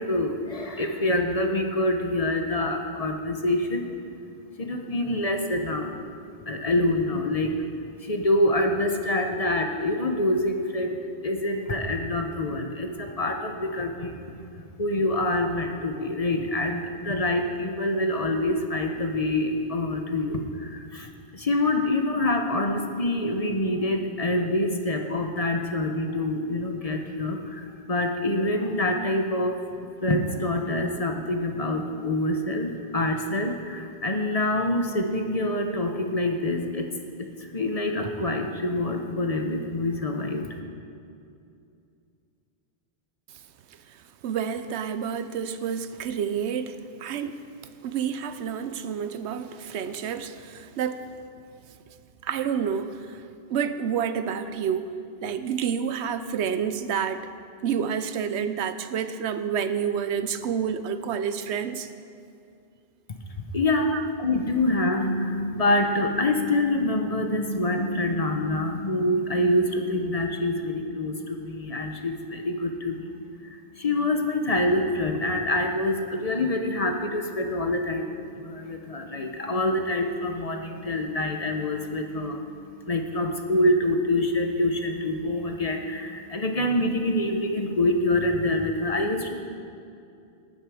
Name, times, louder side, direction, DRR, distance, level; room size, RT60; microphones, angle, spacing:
voice 1, 0.0-14.2 14.8-29.6 30.0-36.9 37.2-37.3 37.5-40.4 63.5-63.9 64.2-73.1 73.4-89.3, left 1 dB, 35° left, 4 dB, 0.9 m, -26 dB
voice 2, 43.9-47.4 47.8-51.1 52.2-53.2 53.5-54.9 55.2-57.3 57.6-61.9 63.8-64.1, right 7 dB, 85° right, 11 dB, 0.9 m, -29 dB
19.0 x 6.6 x 4.9 m, 2.5 s
omnidirectional pair, 1.1 m